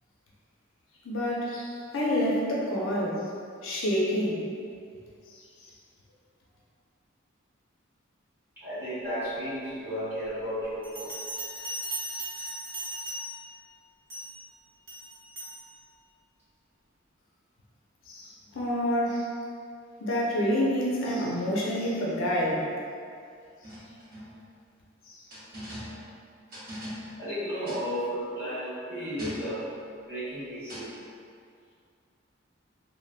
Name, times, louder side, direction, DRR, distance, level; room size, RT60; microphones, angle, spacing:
voice 1, 1.0-3.2 3.6-4.4 18.1-19.3 20.0-22.7, equal, 80° left, -4 dB, 0.5 m, -28 dB
voice 2, 8.6-11.1 27.2-29.7 30.0-30.9, equal, 10° right, -15 dB, 1.4 m, -33 dB
Bell, 10.8-13.5 14.1-14.4 14.9-15.6, right 1 dB, 75° right, 0.9 m, -37 dB
sound 1, 23.6-24.5 25.3-26.2 26.5-27.3 27.6-27.9 29.2-29.7 30.7-31.0, equal, 50° right, 0.8 m, -41 dB
3.3 x 2.1 x 2.4 m, 2.3 s
head